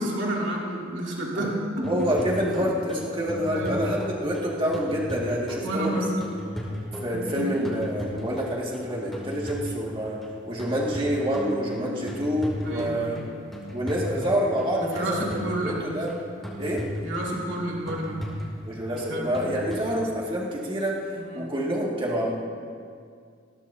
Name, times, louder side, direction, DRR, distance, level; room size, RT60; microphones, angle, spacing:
voice 1, 0.0-1.9 3.5-3.8 5.6-6.2 7.1-7.4 12.6-13.2 14.8-15.9 17.0-18.3 18.9-19.3 21.1-21.5, right 1 dB, 70° right, -3 dB, 2.8 m, -30 dB
sound 1, 1.8-20.0, equal, ahead, 2.7 m, -37 dB
voice 2, 1.8-6.0 7.0-10.2 10.5-13.2 13.7-15.2 15.6-16.2 16.6-16.8 18.7-22.3, equal, 25° right, -4 dB, 2.2 m, -27 dB
20.0 x 16.0 x 2.8 m, 2.2 s
head